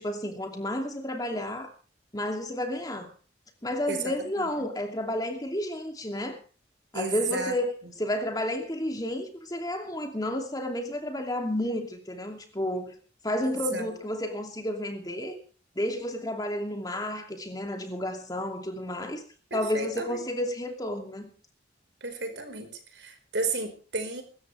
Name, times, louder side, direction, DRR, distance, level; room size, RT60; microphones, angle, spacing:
voice 1, 0.0-1.7 2.1-3.1 3.6-6.4 6.9-12.9 13.2-15.4 15.8-19.2 19.5-21.3, left 1 dB, 20° left, 2.7 m, -31 dB
voice 2, 3.9-4.7 6.9-7.5 13.4-13.9 19.5-20.2 22.0-24.2, right 3 dB, 70° right, 4.8 m, -33 dB
24.5 x 13.5 x 3.4 m
head